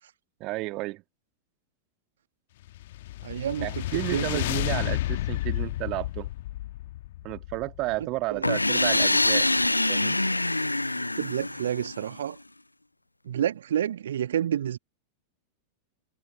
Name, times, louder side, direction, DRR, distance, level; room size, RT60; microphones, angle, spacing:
voice 1, 0.4-1.0 3.6-6.3 7.2-9.5 9.9-10.2, right 21 dB, 40° right, 1.9 m, -32 dB
sound 1, 2.7-8.1, left 15 dB, 55° left, 1.4 m, -31 dB
voice 2, 3.2-4.6 8.3-8.5 11.2-12.4 13.2-14.8, right 10 dB, 65° right, 1.5 m, -29 dB
sound 2, 8.4-12.2, left 2 dB, 85° left, 0.4 m, -25 dB
figure-of-eight pair, 90°, 0 cm